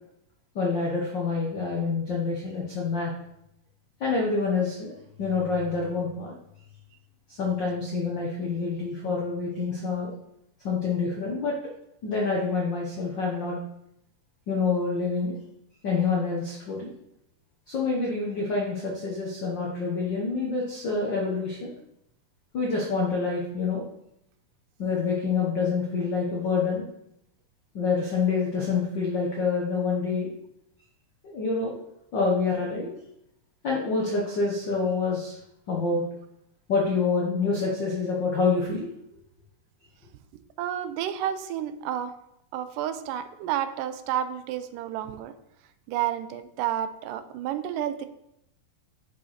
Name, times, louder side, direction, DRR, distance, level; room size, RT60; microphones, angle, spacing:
voice 1, 0.5-3.1 4.0-6.3 7.3-10.1 10.6-11.6 12.0-13.6 14.5-15.3 15.8-16.9 17.7-21.7 22.5-23.8 24.8-26.8 27.7-30.3 31.3-31.8 32.1-32.9 33.6-35.4 35.7-36.0 36.7-38.9, left 4 dB, 80° left, -3 dB, 1.0 m, -27 dB
voice 2, 40.6-42.1 42.5-45.3 45.9-48.1, right 10 dB, 90° right, 11 dB, 2.2 m, -30 dB
7.9 x 4.9 x 4.2 m, 0.80 s
omnidirectional pair, 3.7 m